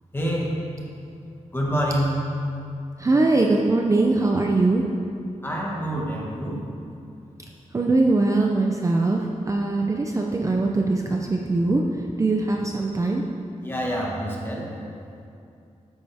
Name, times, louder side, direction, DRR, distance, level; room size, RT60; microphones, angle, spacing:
voice 1, 0.1-0.5 1.5-2.2 5.4-6.6 13.6-14.7, equal, 15° left, -3 dB, 1.5 m, -26 dB
voice 2, 3.0-4.8 7.7-11.8 12.2-13.2, right 2 dB, 25° right, 1 dB, 0.5 m, -21 dB
12.5 x 8.9 x 3.5 m, 2.6 s
wide cardioid pair, 175°, 13 cm